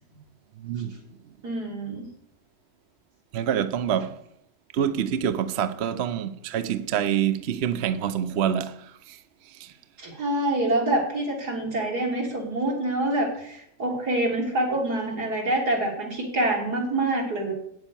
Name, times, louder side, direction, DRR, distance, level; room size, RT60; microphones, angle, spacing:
voice 1, 0.6-0.9 3.3-4.2 4.7-9.2 9.6-9.7, right 9 dB, 55° right, 0.8 m, -26 dB
voice 2, 1.4-2.0 10.0-17.5, right 1 dB, 80° right, 4.0 m, -26 dB
9.3 x 8.1 x 7.0 m
omnidirectional pair, 1.7 m